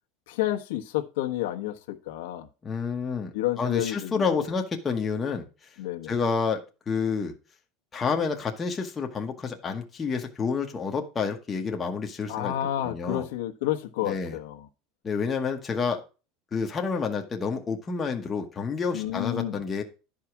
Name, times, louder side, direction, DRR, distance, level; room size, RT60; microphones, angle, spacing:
voice 1, 0.3-2.5 3.3-4.4 5.8-6.1 12.3-14.7 18.9-19.6, left 13 dB, 80° left, 1.1 m, -30 dB
voice 2, 2.6-5.5 6.1-7.3 7.9-12.5 12.8-13.3 14.0-14.4 15.0-16.0 16.5-19.8, left 5 dB, 15° left, 1.0 m, -29 dB
11.5 x 4.9 x 5.9 m
supercardioid pair, 175°, 0 cm